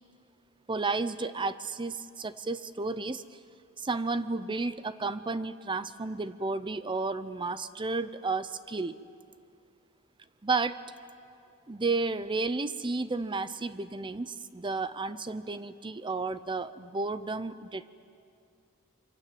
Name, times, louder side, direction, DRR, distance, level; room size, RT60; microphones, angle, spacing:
voice 1, 0.7-3.2 3.8-8.9 10.4-10.8 11.7-17.9, right 3 dB, 20° right, 13 dB, 0.6 m, -32 dB
26.5 x 24.5 x 7.7 m, 2.4 s
head